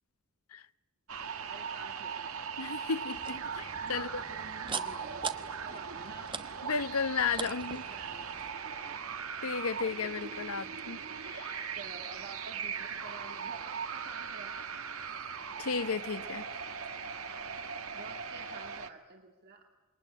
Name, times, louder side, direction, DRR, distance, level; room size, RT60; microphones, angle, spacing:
sound 1, 1.1-18.9, right 6 dB, 75° right, 1.6 m, -39 dB
voice 1, 1.5-2.3 3.5-5.2 5.6-6.4 7.1-9.0 10.9-11.0 11.8-15.3 17.9-19.7, right 3 dB, 50° right, 2.3 m, -50 dB
voice 2, 2.6-4.2 6.6-7.8 9.4-11.0 11.2-11.7 15.6-16.4, left 5 dB, 85° left, 0.8 m, -34 dB
sound 2, 3.1-8.5, right 5 dB, 25° right, 1.2 m, -43 dB
27.0 x 22.5 x 9.9 m
head